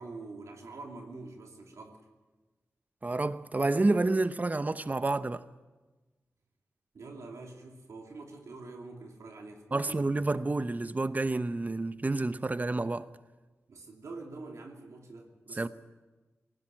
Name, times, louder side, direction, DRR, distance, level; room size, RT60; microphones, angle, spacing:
voice 1, 0.0-2.0 6.9-10.2 13.7-15.7, right 3 dB, 75° right, 2.8 m, -45 dB
voice 2, 3.0-5.4 9.7-13.1 15.5-15.7, right 2 dB, 30° right, 0.8 m, -29 dB
19.0 x 16.0 x 9.0 m
cardioid pair, 50°, 5 cm